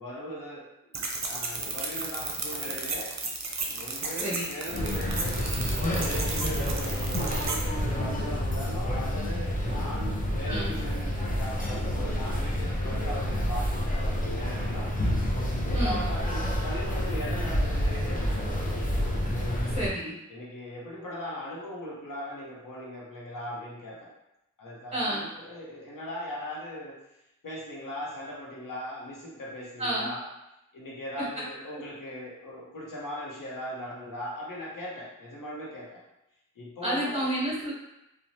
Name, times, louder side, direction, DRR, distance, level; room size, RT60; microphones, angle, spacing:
voice 1, 0.0-3.2 3.7-5.4 6.0-15.0 15.7-18.7 19.2-19.8 20.3-24.1 24.6-27.0 27.4-30.3 30.7-36.0 36.6-37.3, left 1 dB, 90° left, -5 dB, 0.9 m, -39 dB
sound 1, 0.9-7.6, right 3 dB, 60° right, 0.5 m, -34 dB
sound 2, 4.7-19.9, equal, 25° left, 0.6 m, -29 dB
voice 2, 10.4-10.7 15.7-16.0 19.7-20.1 24.9-25.2 29.8-30.1 36.8-37.7, right 1 dB, 20° right, -6 dB, 1.2 m, -30 dB
3.0 x 2.3 x 2.7 m, 0.89 s
wide cardioid pair, 60°, 32 cm